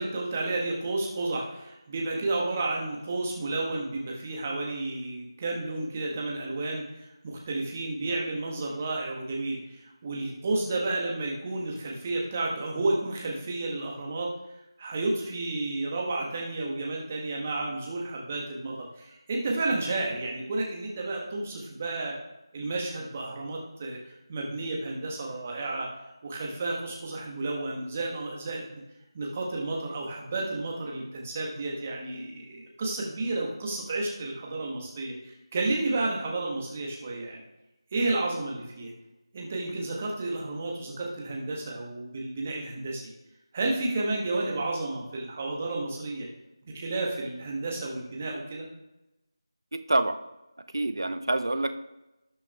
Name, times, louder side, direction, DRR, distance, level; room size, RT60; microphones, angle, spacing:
voice 1, 0.0-14.3 14.8-22.2 22.5-25.9 26.2-28.7 29.1-37.4 37.9-38.9 39.3-43.0 43.5-46.3 46.7-48.7, right 2 dB, 20° right, -2 dB, 1.2 m, -31 dB
voice 2, 49.7-50.2 50.7-51.7, right 2 dB, 55° right, 9 dB, 0.7 m, -27 dB
18.0 x 6.0 x 2.3 m, 0.99 s
figure-of-eight pair, 165°, 3 cm